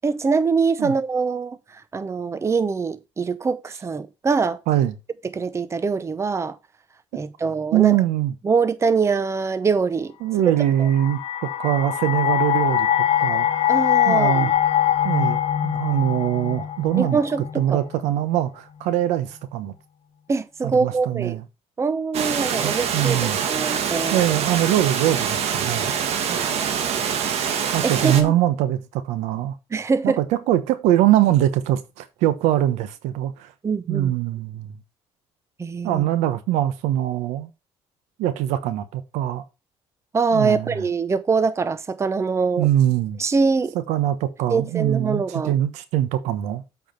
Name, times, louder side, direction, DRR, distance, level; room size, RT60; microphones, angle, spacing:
voice 1, 0.0-4.6 5.2-6.6 7.1-8.0 8.4-10.1 10.5-10.6 13.7-14.5 17.0-17.8 20.3-21.4 21.8-24.2 26.3-26.9 27.8-28.3 29.7-30.2 33.6-34.1 35.6-36.0 40.1-42.7 43.2-43.7 44.5-45.6, right 4 dB, 25° right, 0.8 m, -23 dB
voice 2, 4.7-5.0 7.7-8.3 10.2-12.9 13.2-13.5 14.1-14.5 15.0-17.2 17.5-19.7 20.6-21.4 22.6-23.4 24.1-25.9 27.7-29.5 30.0-33.5 33.9-34.8 35.8-37.5 38.2-39.4 40.3-40.8 42.6-43.2 43.9-46.6, right 12 dB, 85° right, 1.1 m, -22 dB
sound 1, 10.6-17.8, left 10 dB, 60° left, 0.9 m, -22 dB
Water, 22.1-28.2, right 7 dB, 65° right, 1.5 m, -25 dB
8.0 x 4.9 x 5.1 m
cardioid pair, 100°, 11 cm